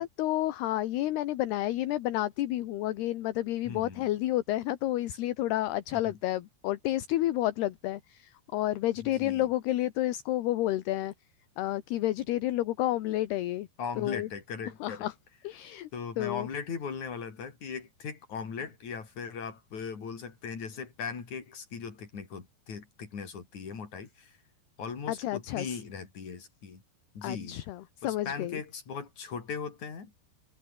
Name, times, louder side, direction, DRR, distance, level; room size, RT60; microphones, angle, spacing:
voice 1, 0.0-11.1 11.6-13.7 14.0-14.3 14.8-15.1 15.4-15.9 16.2-16.5 25.1-25.8 27.2-28.6, left 15 dB, 75° left, 3.2 m, -30 dB
voice 2, 3.7-4.1 5.9-6.2 9.0-9.5 13.8-15.1 15.9-24.4 24.8-26.8 27.1-27.6 28.0-30.1, left 6 dB, 45° left, 5.4 m, -39 dB
omnidirectional pair, 5.0 m